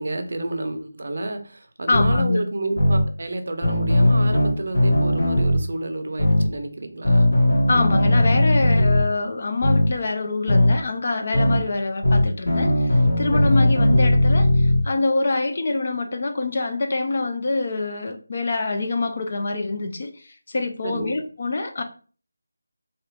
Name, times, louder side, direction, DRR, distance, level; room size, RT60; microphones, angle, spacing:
voice 1, 0.0-7.3 13.3-13.9 20.8-21.2, right 2 dB, 50° right, 6 dB, 0.5 m, -30 dB
sound 1, 1.9-2.2 2.8-3.0 3.6-5.6 6.2-6.5 7.1-9.0 9.6-9.9 10.5-10.7 11.3-11.6 12.0-14.8, left 1 dB, 60° left, 1.4 m, -18 dB
voice 2, 1.9-2.4 7.7-21.8, left 3 dB, 35° left, 5 dB, 0.4 m, -25 dB
2.9 x 2.4 x 3.3 m, 0.39 s
figure-of-eight pair, 175°, 0 cm